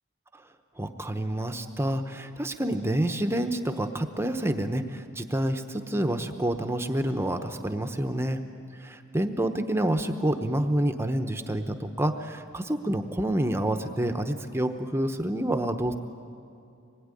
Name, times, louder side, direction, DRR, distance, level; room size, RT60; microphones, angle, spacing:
voice 1, 0.8-8.4 8.7-15.9, right 1 dB, 10° right, 6 dB, 0.9 m, -28 dB
25.0 x 20.5 x 9.8 m, 2.5 s
head